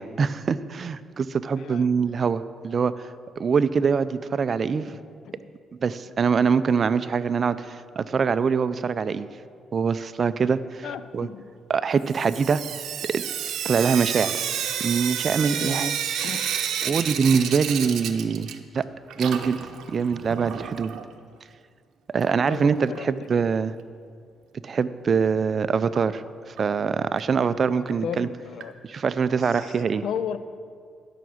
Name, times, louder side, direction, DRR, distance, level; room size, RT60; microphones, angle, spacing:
voice 1, 0.0-2.9 3.4-5.0 5.8-9.3 9.7-10.9 11.1-11.3 11.7-12.6 13.1-13.2 13.6-14.4 14.8-15.9 16.8-18.5 18.7-18.8 19.2-19.6 19.9-20.9 22.1-23.7 24.6-28.3 28.8-30.0, right 5 dB, 45° right, 14 dB, 0.4 m, -24 dB
voice 2, 10.8-11.4 15.5-15.9 16.2-16.4 22.5-23.1 27.8-28.7 29.4-29.7 30.0-30.4, left 8 dB, 70° left, 13 dB, 0.5 m, -34 dB
Sink (filling or washing) / Drip, 12.1-18.8 19.1-21.0 22.2-22.3 22.6-22.7 23.0-23.1 26.0-26.1 26.6-26.7 27.2-27.3 27.9-28.0 28.6-28.7 29.6-29.7, right 9 dB, 75° right, 0.7 m, -30 dB
13.0 x 5.9 x 6.4 m, 2.2 s
cardioid pair, 90°, 0 cm